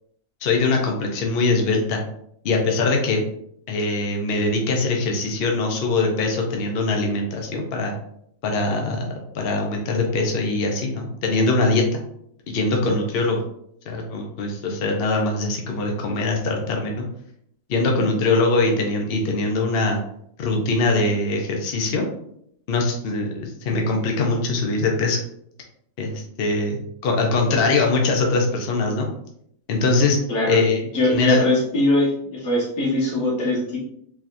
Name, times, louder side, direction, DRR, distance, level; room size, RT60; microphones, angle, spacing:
voice 1, 0.4-2.0 2.4-3.2 3.7-7.9 8.4-9.1 9.3-12.0 12.5-13.4 13.9-17.1 17.7-20.0 20.4-22.1 22.7-25.2 26.0-29.1 29.7-30.2 30.5-30.8 31.1-31.4, left 3 dB, 55° left, 1 dB, 0.8 m, -22 dB
voice 2, 30.3-30.6 30.9-33.8, left 1 dB, 80° left, -3 dB, 1.6 m, -21 dB
4.1 x 2.9 x 2.5 m, 0.70 s
omnidirectional pair, 1.4 m